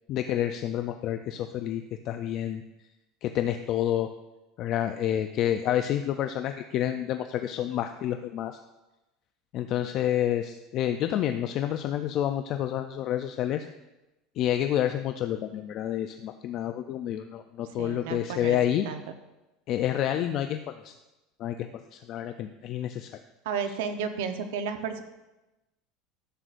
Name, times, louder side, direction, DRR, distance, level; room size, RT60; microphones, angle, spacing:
voice 1, 0.1-2.6 3.2-4.1 4.6-8.6 9.5-13.7 14.4-18.9 19.7-20.9 21.4-23.2, left 11 dB, 45° left, 8 dB, 0.3 m, -29 dB
voice 2, 17.8-18.6 18.8-19.0 23.4-25.0, right 6 dB, 90° right, 8 dB, 0.8 m, -32 dB
11.0 x 7.9 x 2.5 m, 1.0 s
cardioid pair, 155°, 0 cm